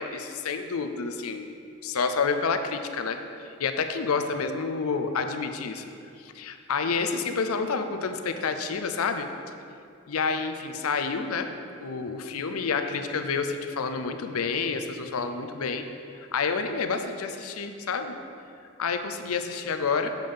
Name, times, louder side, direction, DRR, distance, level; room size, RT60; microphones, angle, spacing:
voice 1, 0.0-1.5 1.8-5.9 6.2-9.3 10.1-11.5 11.8-15.9 16.1-18.1 18.8-20.1, left 5 dB, 85° left, 7 dB, 0.6 m, -29 dB
7.5 x 5.2 x 5.4 m, 2.5 s
head